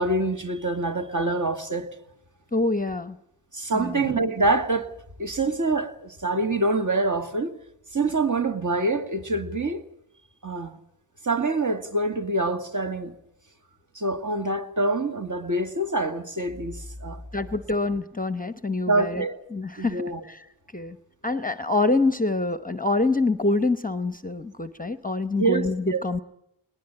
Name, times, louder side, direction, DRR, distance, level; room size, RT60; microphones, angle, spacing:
voice 1, 0.0-1.9 3.5-4.9 5.2-7.6 7.9-9.8 10.4-10.8 11.2-13.1 13.9-17.4 18.9-19.3 19.8-20.2 25.4-26.0, right 2 dB, 40° right, 2.1 m, -25 dB
voice 2, 2.5-3.2 3.7-4.0 17.3-19.3 19.5-20.4 20.7-21.0 21.2-26.2, left 2 dB, 15° left, 0.9 m, -26 dB
21.0 x 19.5 x 8.9 m
wide cardioid pair, 60°, 49 cm